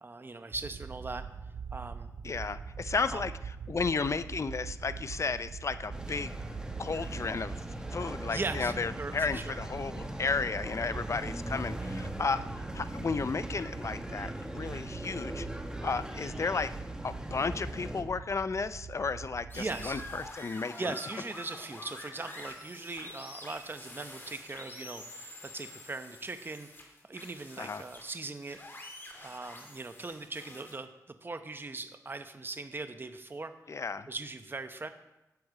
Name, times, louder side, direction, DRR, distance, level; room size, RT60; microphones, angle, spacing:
voice 1, 0.0-1.2 1.7-2.1 3.1-3.2 8.0-9.6 19.5-20.0 20.8-26.7 27.1-28.6 29.2-30.9 31.2-33.5 34.1-34.9, right 3 dB, 35° right, 9 dB, 0.8 m, -40 dB
sound 1, 0.5-20.3, right 6 dB, 60° right, 0.5 m, -44 dB
voice 2, 2.2-6.3 6.8-7.6 7.9-12.5 12.7-15.5 15.8-16.7 17.0-21.0 27.6-27.8 33.7-34.1, left 4 dB, 50° left, 14 dB, 0.5 m, -33 dB
sound 2, 5.9-18.0, right 1 dB, 10° right, 1.3 m, -40 dB
sound 3, 19.5-30.7, left 1 dB, 35° left, 2.5 m, -47 dB
11.5 x 7.9 x 4.9 m, 0.95 s
cardioid pair, 60°, 6 cm